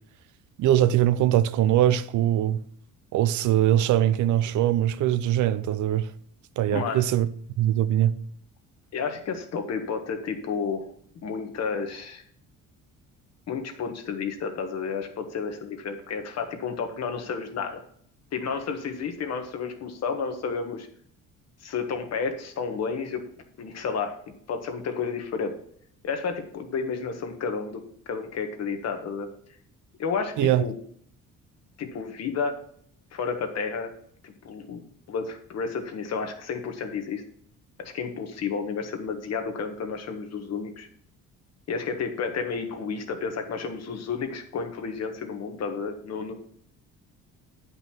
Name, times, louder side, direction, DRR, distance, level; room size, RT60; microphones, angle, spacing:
voice 1, 0.6-2.6 3.1-6.1 6.6-7.3 7.6-8.1 30.4-30.6, right 12 dB, 70° right, 0.6 m, -22 dB
voice 2, 6.7-7.0 8.9-10.9 11.2-12.2 13.5-17.8 18.3-20.9 21.6-23.2 23.6-24.1 24.5-25.6 26.0-29.3 30.0-30.7 31.8-32.6 33.1-33.9 34.2-37.2 37.8-40.9 41.7-46.3, left 5 dB, 55° left, 1.5 m, -31 dB
9.0 x 5.4 x 4.4 m
cardioid pair, 120°, 31 cm